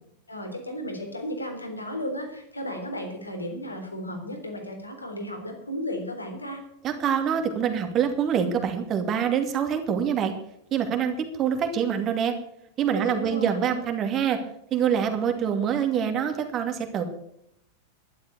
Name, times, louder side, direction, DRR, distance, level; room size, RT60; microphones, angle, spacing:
voice 1, 0.3-6.6 12.9-13.7, equal, 80° left, 3 dB, 3.7 m, -34 dB
voice 2, 6.8-10.3 10.7-12.3 12.8-14.4 14.7-17.0, right 8 dB, 30° right, 6 dB, 2.5 m, -25 dB
12.0 x 11.5 x 6.9 m, 0.75 s
figure-of-eight pair, 90°, 0 cm